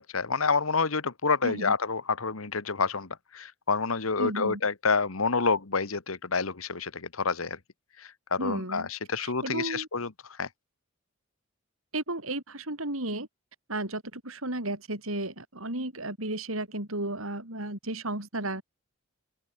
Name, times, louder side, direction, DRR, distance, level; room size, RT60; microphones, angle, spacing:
voice 1, 0.0-7.6 8.0-10.1 10.4-10.5, left 4 dB, 90° left, 1.6 m, -28 dB
voice 2, 4.2-4.6 8.4-8.9 9.2-9.9 11.9-13.3 13.7-18.6, right 1 dB, 85° right, 7.5 m, -33 dB
open air
head